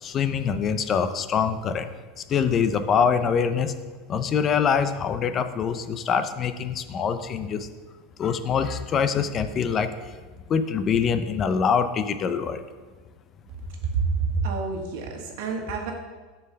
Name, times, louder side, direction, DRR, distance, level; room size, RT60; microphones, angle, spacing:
voice 1, 0.0-1.9 2.3-3.7 4.1-7.7 8.2-9.9 10.5-12.6, left 6 dB, 30° left, 10 dB, 0.5 m, -24 dB
voice 2, 13.8-15.9, right 4 dB, 70° right, 2 dB, 1.5 m, -27 dB
6.6 x 4.6 x 6.4 m, 1.4 s
supercardioid pair, 140°, 0 cm